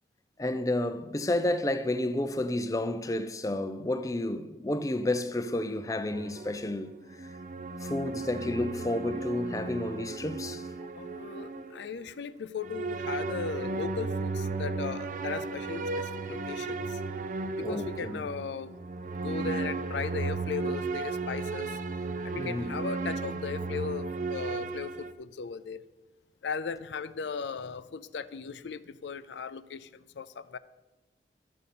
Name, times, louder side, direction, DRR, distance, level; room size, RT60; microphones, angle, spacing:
voice 1, 0.4-7.4 7.8-10.7 17.6-18.2 22.4-22.8, left 1 dB, 20° left, 0.4 m, -31 dB
sound 1, 6.1-12.0 12.6-25.1, right 3 dB, 45° right, 0.5 m, -35 dB
voice 2, 11.0-17.0 17.6-18.8 19.1-21.8 22.2-25.8 26.4-30.6, left 5 dB, 85° left, 0.4 m, -37 dB
12.5 x 6.8 x 4.2 m
head